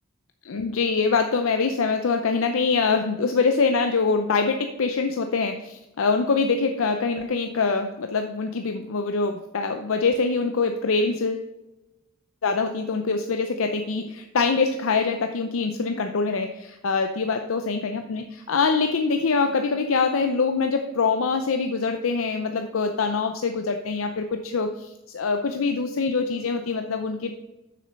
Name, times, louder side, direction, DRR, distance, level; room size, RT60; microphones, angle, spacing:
voice 1, 0.4-11.5 12.4-27.3, left 4 dB, 85° left, 6 dB, 0.6 m, -24 dB
6.8 x 6.5 x 5.3 m, 0.98 s
head